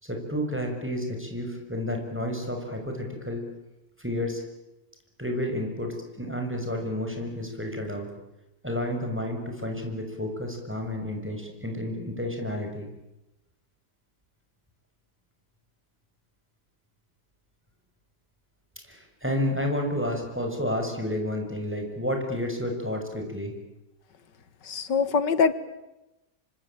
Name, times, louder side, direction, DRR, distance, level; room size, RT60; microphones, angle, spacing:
voice 1, 0.0-3.4 4.0-4.4 5.2-8.1 8.6-12.9 18.8-23.5, left 1 dB, 5° right, 3 dB, 6.2 m, -31 dB
voice 2, 24.6-25.5, left 5 dB, 85° left, 14 dB, 2.2 m, -23 dB
26.5 x 25.0 x 8.9 m, 0.97 s
omnidirectional pair, 1.8 m